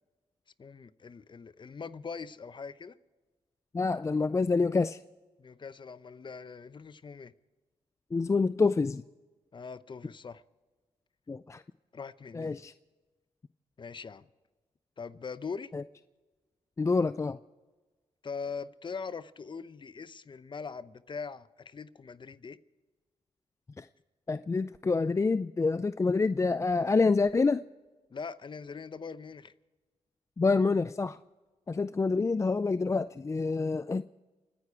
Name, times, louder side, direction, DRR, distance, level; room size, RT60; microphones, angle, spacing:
voice 1, 0.6-2.9 5.4-7.3 9.5-10.4 11.9-12.6 13.8-14.3 15.0-15.7 18.2-22.6 28.1-29.5, left 5 dB, 40° left, 0.8 m, -42 dB
voice 2, 3.7-5.0 8.1-9.0 11.3-11.6 12.3-12.7 15.7-15.8 16.8-17.4 23.8-23.9 24.3-27.6 30.4-31.2 31.7-34.0, left 4 dB, 25° left, 0.4 m, -27 dB
29.5 x 10.0 x 4.7 m
cardioid pair, 60°, 12 cm